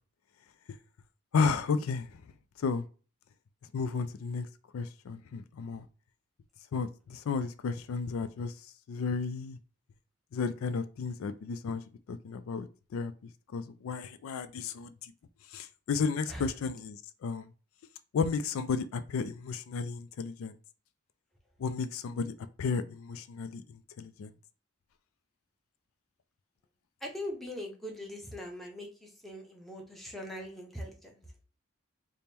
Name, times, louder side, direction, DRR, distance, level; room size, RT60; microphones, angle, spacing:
voice 1, 1.3-2.1 2.6-2.9 3.7-4.5 4.7-5.8 6.7-8.5 8.9-9.6 10.3-11.8 12.1-13.1 13.5-15.1 15.5-17.5 18.1-20.5 21.6-24.3, left 5 dB, 85° left, 0.3 m, -33 dB
voice 2, 27.0-28.9 29.2-31.1, left 1 dB, ahead, 0.7 m, -41 dB
3.5 x 2.1 x 4.2 m
head